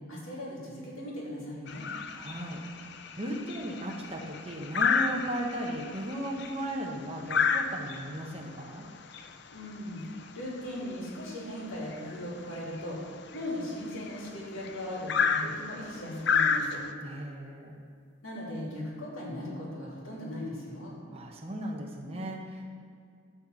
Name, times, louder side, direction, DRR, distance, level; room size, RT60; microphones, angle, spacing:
voice 1, 0.1-1.9 9.5-16.8 18.2-20.9, left 1 dB, 85° left, -4 dB, 2.7 m, -38 dB
sound 1, 1.7-16.9, left 6 dB, 55° left, 0.5 m, -32 dB
voice 2, 2.2-8.9 17.0-17.8 21.1-22.7, right 1 dB, 30° right, 0 dB, 1.1 m, -36 dB
12.5 x 4.2 x 7.1 m, 2.2 s
head